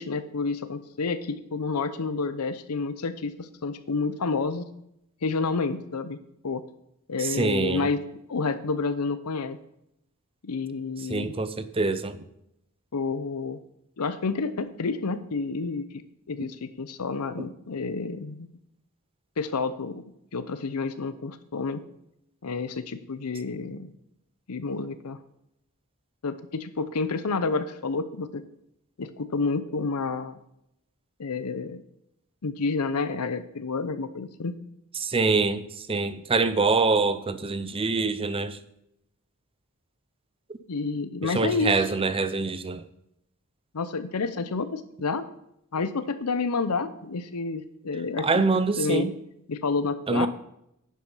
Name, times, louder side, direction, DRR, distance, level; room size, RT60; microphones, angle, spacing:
voice 1, 0.0-4.7 5.2-6.2 6.4-6.6 7.1-8.0 8.3-9.6 10.4-11.3 12.9-13.6 14.0-15.9 16.3-18.5 19.4-20.0 20.3-21.8 22.4-23.9 24.5-25.2 26.2-28.4 29.0-30.4 31.2-31.8 32.4-34.5 40.7-41.9 43.7-45.2 45.7-48.4 48.8-49.1 49.5-50.3, left 4 dB, 85° left, 0.7 m, -29 dB
voice 2, 7.2-7.9 11.1-12.2 35.0-35.6 35.9-38.6 41.2-42.8 48.2-49.1 50.1-50.3, right 3 dB, 25° right, 0.6 m, -25 dB
10.5 x 7.6 x 5.6 m
head